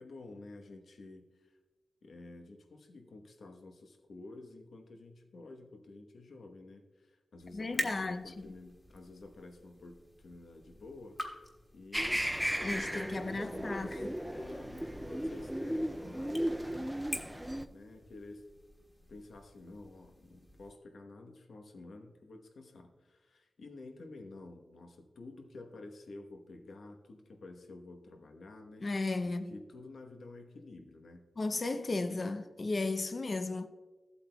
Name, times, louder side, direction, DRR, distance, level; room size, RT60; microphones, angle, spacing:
voice 1, 0.0-1.6 2.0-11.2 11.7-12.2 12.7-14.0 14.3-17.0 17.7-18.5 19.1-28.9 29.2-31.3, left 2 dB, 85° left, 1.1 m, -51 dB
sound 1, 7.4-20.7, left 1 dB, 20° left, 1.5 m, -47 dB
voice 2, 7.5-8.2 12.6-14.1 28.8-29.5 31.4-33.7, left 3 dB, 40° left, 0.6 m, -35 dB
sound 2, 11.9-17.7, equal, 5° right, 0.4 m, -35 dB
15.0 x 8.2 x 2.3 m
wide cardioid pair, 115°, 0 cm